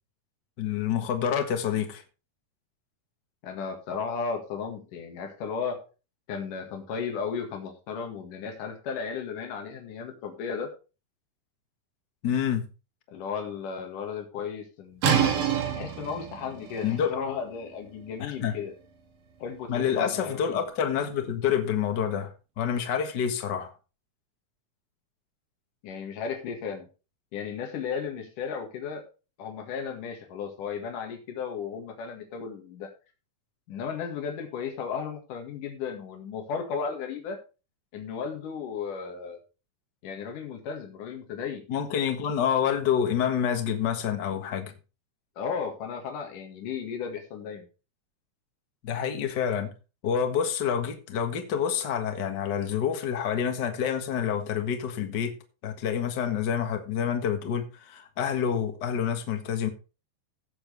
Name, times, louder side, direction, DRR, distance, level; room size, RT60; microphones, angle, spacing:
voice 1, 0.6-2.0 12.2-12.7 16.8-17.2 18.2-18.6 19.7-22.3 22.6-23.7 41.7-44.7 48.8-49.7 50.0-55.3 55.6-59.7, left 8 dB, 45° left, 1.7 m, -27 dB
voice 2, 3.4-5.8 6.3-10.7 13.1-15.0 15.7-18.7 19.4-20.6 25.8-26.9 27.3-29.0 29.4-32.9 33.7-37.4 37.9-39.4 40.0-41.6 45.4-47.7, left 6 dB, 85° left, 3.5 m, -34 dB
sound 1, 15.0-20.6, right 7 dB, 85° right, 3.6 m, -30 dB
16.5 x 7.3 x 3.4 m
omnidirectional pair, 3.6 m